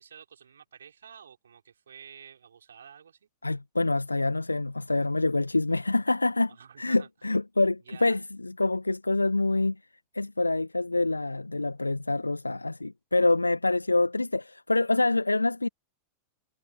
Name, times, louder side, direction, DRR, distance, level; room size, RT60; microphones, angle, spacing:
voice 1, 0.0-3.3 6.5-7.1 7.9-8.2, right 7 dB, 70° right, 6.3 m, -50 dB
voice 2, 3.4-6.5 6.8-9.8 10.1-15.7, left 2 dB, 85° left, 1.5 m, -26 dB
figure-of-eight pair, 90°, 0 cm